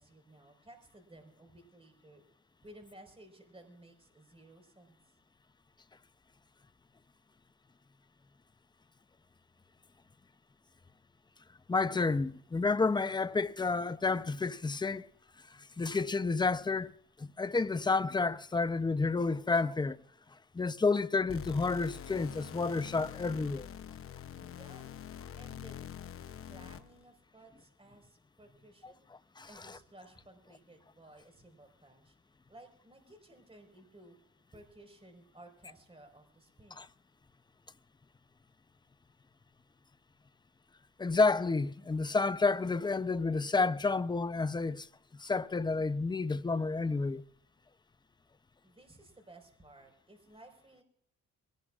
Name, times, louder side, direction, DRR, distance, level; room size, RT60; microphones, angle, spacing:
voice 1, 0.0-2.2 2.6-5.0 24.4-24.9 25.3-25.8 26.5-29.1 29.5-32.1 32.5-34.2 34.5-36.9 48.6-50.8, right 1 dB, 20° right, 4.7 m, -56 dB
voice 2, 11.7-15.1 15.5-16.9 17.2-20.0 20.5-23.7 29.4-29.5 36.8-36.9 41.0-44.9 45.2-47.2, left 3 dB, 15° left, 0.6 m, -30 dB
sound 1, 21.3-27.0, left 9 dB, 45° left, 0.8 m, -45 dB
22.5 x 18.0 x 2.5 m
cardioid pair, 90°, 30 cm